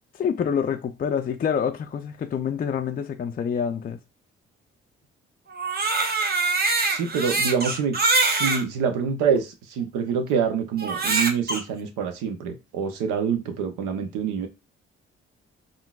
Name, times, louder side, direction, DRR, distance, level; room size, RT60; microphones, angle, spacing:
voice 1, 0.1-4.0, left 7 dB, 30° left, 0.4 m, -27 dB
Crying sobbing, 5.5-8.6 9.4-9.5 10.8-11.6, right 3 dB, 30° right, 0.8 m, -23 dB
voice 2, 6.9-8.0 8.2-14.5, right 6 dB, 75° right, 0.7 m, -26 dB
3.7 x 2.4 x 2.2 m
hypercardioid pair, 45°, 31 cm